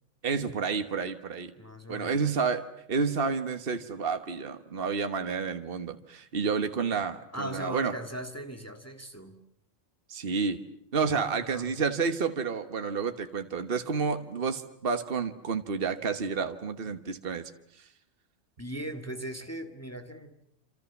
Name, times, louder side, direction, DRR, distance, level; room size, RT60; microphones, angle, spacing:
voice 1, 0.2-1.5 1.9-7.9 10.1-10.6 10.9-17.9, right 5 dB, 50° right, 8 dB, 1.5 m, -30 dB
voice 2, 1.6-2.3 7.3-9.4 11.1-11.8 18.6-20.5, right 1 dB, 10° left, 5 dB, 1.9 m, -39 dB
27.5 x 27.0 x 7.2 m, 0.69 s
omnidirectional pair, 1.3 m